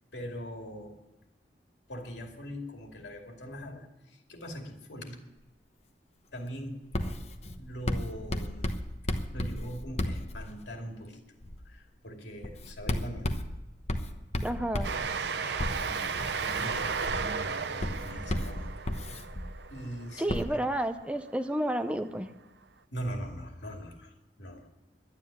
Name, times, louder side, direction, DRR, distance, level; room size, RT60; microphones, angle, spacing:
voice 1, 0.1-1.0 1.9-5.2 6.3-6.8 7.6-8.7 9.3-11.3 11.6-13.3 15.8-16.1 16.4-18.6 19.7-20.6 22.9-24.1 24.4-24.7, equal, 75° left, 2 dB, 2.5 m, -41 dB
Writing, 6.9-10.9 11.4-11.7 12.4-19.8 20.3-20.4, left 1 dB, 35° left, 1.0 m, -35 dB
voice 2, 14.4-14.9 15.3-15.7 20.2-22.3, right 1 dB, 5° right, 8 dB, 0.5 m, -31 dB
Train, 14.8-21.0, right 5 dB, 70° right, 0.7 m, -34 dB
11.5 x 9.7 x 9.9 m, 1.0 s
head